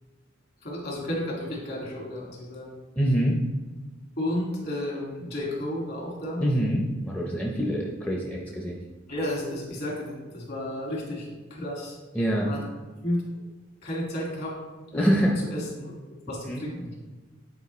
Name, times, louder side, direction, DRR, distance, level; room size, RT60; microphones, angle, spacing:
voice 1, 0.6-2.7 4.2-6.4 9.1-12.0 12.4-12.6 13.0-13.2 13.8-14.5 14.9-15.9 16.3-16.9, left 1 dB, 50° left, -3 dB, 2.1 m, -32 dB
voice 2, 3.0-3.4 6.4-8.8 12.1-12.5 14.9-15.3 16.5-16.6, equal, 5° left, -3 dB, 0.6 m, -25 dB
8.3 x 4.7 x 3.1 m, 1.3 s
head